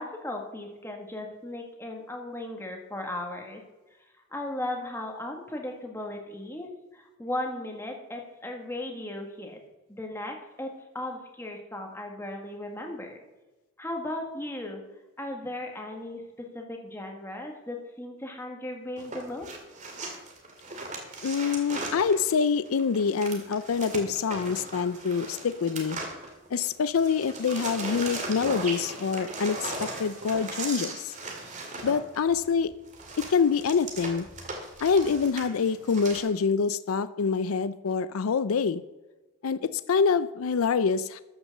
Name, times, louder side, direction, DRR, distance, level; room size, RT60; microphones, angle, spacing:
voice 1, 0.0-3.6 4.3-9.6 9.9-13.2 13.8-14.8 15.2-19.5, left 1 dB, 10° left, 2 dB, 1.7 m, -36 dB
sound 1, 19.0-26.7 26.9-36.2, right 2 dB, 35° right, 2.1 m, -38 dB
voice 2, 21.2-26.0 26.5-31.1 31.8-32.7 33.3-34.3 34.8-38.8 39.4-41.2, left 5 dB, 80° left, 14 dB, 0.5 m, -26 dB
13.5 x 6.1 x 6.6 m, 1.1 s
head